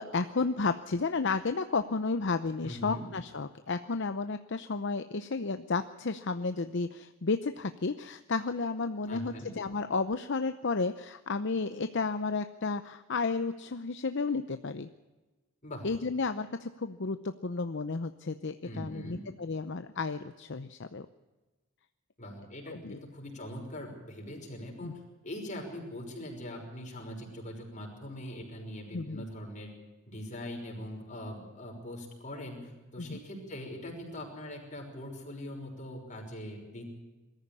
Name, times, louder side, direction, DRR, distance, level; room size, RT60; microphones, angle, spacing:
voice 1, 0.0-14.9 15.8-21.1 22.7-23.0 24.8-25.0 28.9-29.2 33.0-33.2, left 4 dB, 60° left, 10 dB, 0.8 m, -32 dB
voice 2, 2.6-3.1 9.1-9.5 15.6-15.9 18.6-19.2 22.2-24.9 25.2-29.7 30.1-36.9, equal, 40° left, 1 dB, 5.8 m, -42 dB
21.5 x 14.0 x 8.6 m, 1.2 s
head